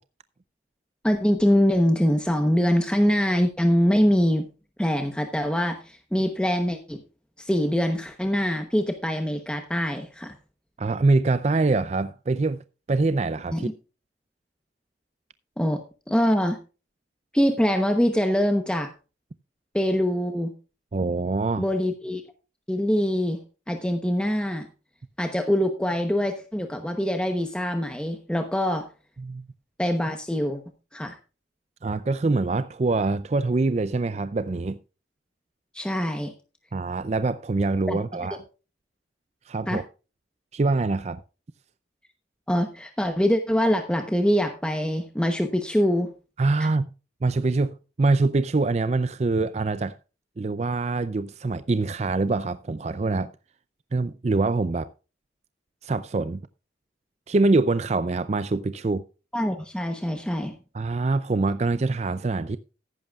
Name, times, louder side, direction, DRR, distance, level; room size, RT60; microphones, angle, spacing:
voice 1, 1.0-4.5 4.8-7.0 7.4-10.3 13.5-13.6 15.6-15.8 16.1-16.6 17.3-18.9 19.7-20.5 21.6-22.2 22.7-23.4 23.7-24.7 25.2-28.9 29.8-30.6 30.9-31.2 35.7-36.3 37.9-38.0 39.7-39.8 42.5-46.1 46.6-46.7 59.3-60.5, equal, 5° left, 0.9 m, -24 dB
voice 2, 10.8-12.6 12.9-13.7 20.9-21.7 29.2-29.5 31.8-34.8 36.7-38.4 39.5-39.8 40.5-41.2 46.4-46.9 47.2-49.9 50.4-53.3 53.9-54.9 55.8-56.4 57.3-59.0 60.7-62.6, right 3 dB, 35° right, 0.4 m, -24 dB
14.5 x 11.0 x 2.4 m
head